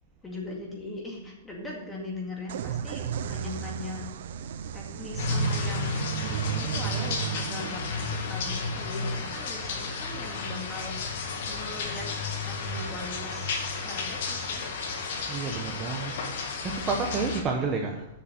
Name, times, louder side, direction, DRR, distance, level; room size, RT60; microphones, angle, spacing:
voice 1, 0.2-4.0 4.7-6.0 6.5-10.9 11.5-14.7, left 2 dB, 10° left, -2 dB, 2.0 m, -40 dB
sound 1, 2.5-10.1, right 8 dB, 65° right, 0.5 m, -34 dB
sound 2, 5.2-17.4, left 4 dB, 60° left, 1.8 m, -32 dB
voice 2, 15.3-16.1 16.6-18.1, right 4 dB, 20° right, 1 dB, 0.9 m, -29 dB
6.9 x 6.8 x 7.5 m, 0.92 s
hypercardioid pair, 160°, 0 cm